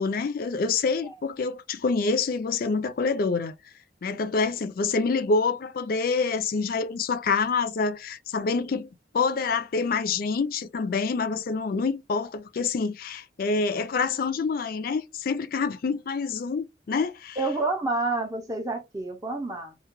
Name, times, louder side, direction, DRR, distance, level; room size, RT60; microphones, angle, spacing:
voice 1, 0.0-3.5 4.0-17.4, left 4 dB, 55° left, 0.4 m, -27 dB
voice 2, 17.4-19.8, right 2 dB, 20° right, 0.5 m, -29 dB
2.2 x 2.1 x 2.9 m
head